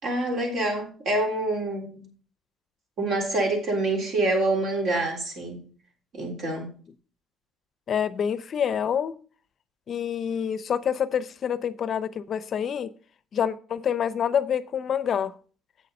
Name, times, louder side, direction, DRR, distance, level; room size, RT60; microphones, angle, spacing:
voice 1, 0.0-2.1 3.0-5.6 6.1-6.7, right 2 dB, 55° right, 3.6 m, -26 dB
voice 2, 7.9-9.1 9.9-12.9 13.3-15.3, left 8 dB, 45° left, 0.6 m, -27 dB
8.0 x 6.9 x 5.3 m
cardioid pair, 120°, 0 cm